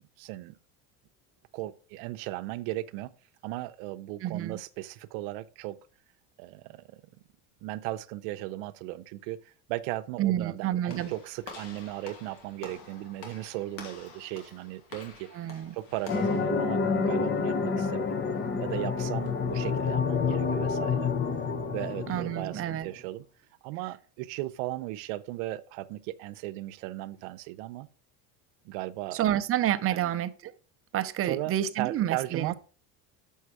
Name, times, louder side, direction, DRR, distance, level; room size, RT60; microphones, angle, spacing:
voice 1, 0.2-0.6 1.5-3.1 3.4-5.8 6.4-7.0 7.6-21.1 21.7-23.2 23.6-27.9 28.6-29.2 29.9-30.1 31.2-32.5, right 17 dB, 90° right, 0.7 m, -37 dB
voice 2, 4.2-4.6 10.2-11.1 15.3-15.8 22.1-22.9 29.1-30.5 30.9-32.5, right 12 dB, 40° right, 0.7 m, -29 dB
Walk footsteps / Slam, 10.9-16.4, left 4 dB, 80° left, 2.5 m, -47 dB
sound 1, 16.1-22.8, left 5 dB, 30° left, 1.1 m, -28 dB
7.1 x 5.6 x 4.8 m
cardioid pair, 130°, 36 cm